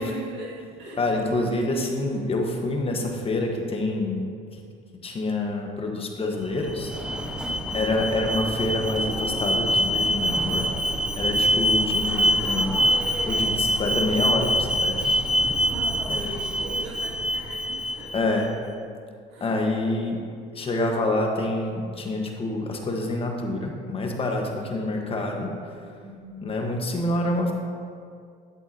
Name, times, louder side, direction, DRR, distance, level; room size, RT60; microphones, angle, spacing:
voice 1, 0.0-1.0 7.4-8.0 13.5-14.0 15.7-18.1 19.3-19.6 24.5-25.1 26.0-26.6, right 2 dB, 65° right, -3 dB, 2.1 m, -41 dB
voice 2, 1.0-4.6 5.0-7.3 7.7-10.7 11.2-12.8 13.3-14.9 15.4-15.5 16.1-16.2 18.1-18.5 19.4-20.2 20.5-25.5 26.4-27.5, left 2 dB, 30° left, 2 dB, 1.3 m, -27 dB
Alarm, 6.4-18.5, equal, 5° right, 0.5 m, -25 dB
10.5 x 8.0 x 2.8 m, 2.2 s
cardioid pair, 105°, 19 cm